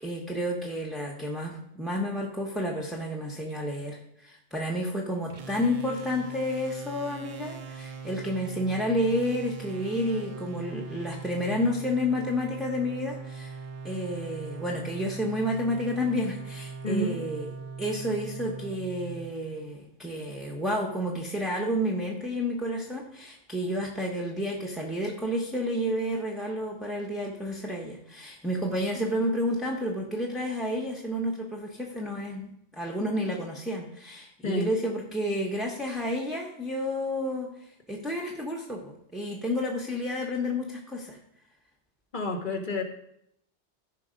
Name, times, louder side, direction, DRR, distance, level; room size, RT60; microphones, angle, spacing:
voice 1, 0.0-13.6 13.8-17.5 17.8-41.2, equal, ahead, -1 dB, 0.9 m, -30 dB
sound 1, 5.3-19.9, right 5 dB, 40° right, 0.6 m, -41 dB
voice 2, 16.8-17.2 34.4-34.7 42.1-42.8, left 2 dB, 45° left, 3 dB, 1.4 m, -29 dB
13.0 x 5.3 x 5.2 m, 0.75 s
omnidirectional pair, 1.2 m